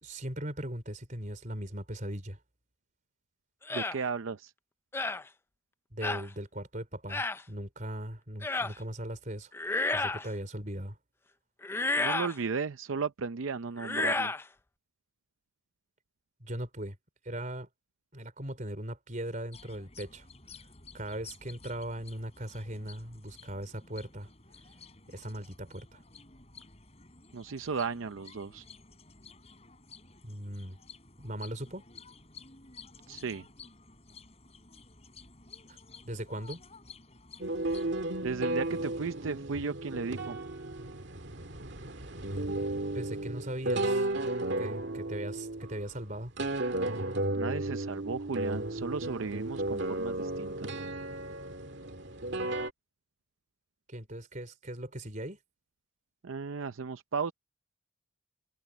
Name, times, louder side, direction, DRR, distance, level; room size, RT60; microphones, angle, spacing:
voice 1, 0.0-2.4 5.9-9.5 9.9-11.0 16.4-17.0 17.2-17.7 18.1-20.3 20.9-24.3 25.1-26.0 30.2-30.8 31.2-31.8 35.7-35.8 36.0-36.6 42.9-44.1 44.6-46.3 53.9-55.4, right 1 dB, 40° right, 4.3 m, -39 dB
sound 1, 3.7-4.0 4.9-5.2 6.0-6.3 7.1-7.4 8.4-8.7 9.5-10.3 11.6-12.4 13.8-14.4, left 3 dB, 10° left, 0.4 m, -31 dB
voice 2, 3.7-4.5 12.0-14.3 27.3-28.6 33.1-33.4 38.2-40.4 47.3-50.7 56.2-57.3, right 5 dB, 80° right, 0.6 m, -35 dB
sound 2, 19.5-38.0, left 5 dB, 30° left, 7.3 m, -53 dB
sound 3, 37.4-52.7, right 2 dB, 60° right, 2.2 m, -34 dB
head